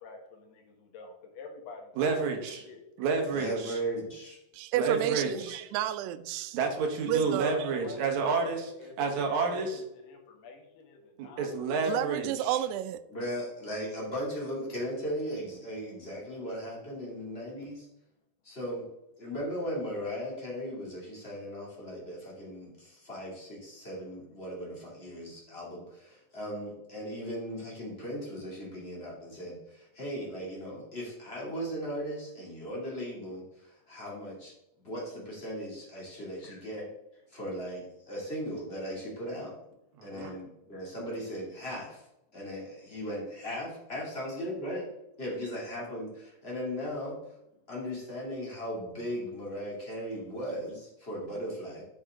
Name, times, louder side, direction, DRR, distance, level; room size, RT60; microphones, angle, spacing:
voice 1, 0.0-2.2 2.6-2.8 7.5-11.7 36.4-36.6 40.3-40.4, left 3 dB, 75° left, 3.5 m, -46 dB
voice 2, 2.0-2.7 3.0-3.8 4.8-5.6 6.5-8.7 9.0-9.8 11.4-12.6 40.0-40.3, right 4 dB, 60° right, 2.1 m, -30 dB
voice 3, 3.3-4.4 13.1-17.9 18.4-18.9 19.2-34.5 34.8-36.9 37.3-39.6 40.0-42.0 42.3-44.9 45.2-47.2 47.7-51.8, equal, 20° left, 2.2 m, -37 dB
voice 4, 4.5-6.6 7.1-7.5 11.9-13.0, right 11 dB, 85° right, 2.6 m, -31 dB
8.1 x 6.7 x 3.7 m
omnidirectional pair, 4.7 m